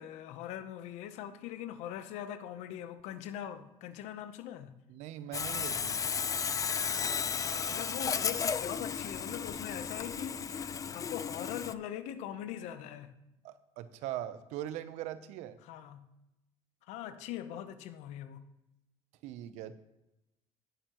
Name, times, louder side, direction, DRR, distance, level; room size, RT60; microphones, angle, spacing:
voice 1, 0.0-4.7 7.4-13.1 15.6-16.1 16.9-18.4, left 11 dB, 80° left, 0.8 m, -42 dB
voice 2, 4.9-6.0 13.4-15.6 19.2-19.8, right 12 dB, 80° right, 0.7 m, -41 dB
Sawing, 5.3-11.7, left 6 dB, 30° left, 0.4 m, -34 dB
17.0 x 6.8 x 3.0 m
supercardioid pair, 90°, 11 cm